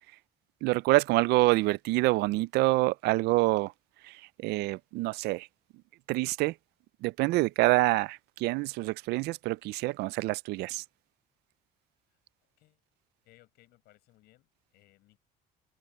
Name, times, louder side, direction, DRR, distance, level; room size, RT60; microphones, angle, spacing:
voice 1, 0.6-3.7 4.0-5.5 6.1-6.5 7.0-10.8, right 20 dB, 80° right, 0.4 m, -26 dB
voice 2, 13.2-15.2, left 17 dB, 80° left, 6.4 m, -62 dB
cardioid pair, 170°, 17 cm